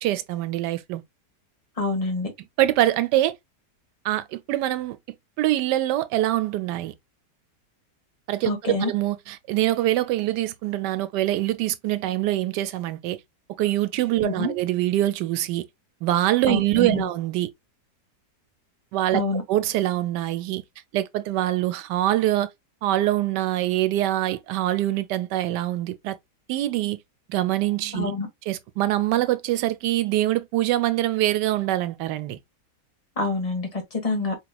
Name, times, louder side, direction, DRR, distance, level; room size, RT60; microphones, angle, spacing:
voice 1, 0.0-1.0 2.6-3.3 4.0-5.0 5.4-6.9 8.3-13.2 13.6-15.7 16.0-17.5 18.9-19.2 19.5-20.6 20.9-22.5 22.8-26.2 26.5-27.0 27.3-28.1 28.5-32.4, right 14 dB, 90° right, 1.2 m, -24 dB
voice 2, 1.8-2.3 8.4-8.9 14.2-14.5 16.5-17.1 19.1-19.4 27.9-28.3 33.2-34.4, left 3 dB, 25° left, 1.2 m, -26 dB
4.9 x 3.0 x 2.2 m
omnidirectional pair, 1.8 m